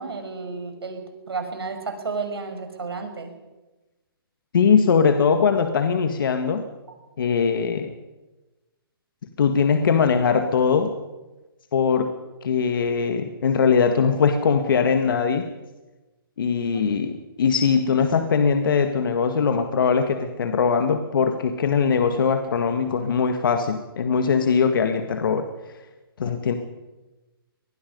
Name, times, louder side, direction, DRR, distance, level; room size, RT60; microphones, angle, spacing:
voice 1, 0.0-3.3 6.9-7.0 26.2-26.4, right 4 dB, 85° right, 6 dB, 5.5 m, -32 dB
voice 2, 4.5-6.6 7.2-7.9 9.4-10.9 11.7-12.1 12.4-15.5 16.4-25.5 26.2-26.5, left 6 dB, 60° left, 6 dB, 1.9 m, -21 dB
24.5 x 20.0 x 5.5 m, 1.1 s
hypercardioid pair, 155°, 13 cm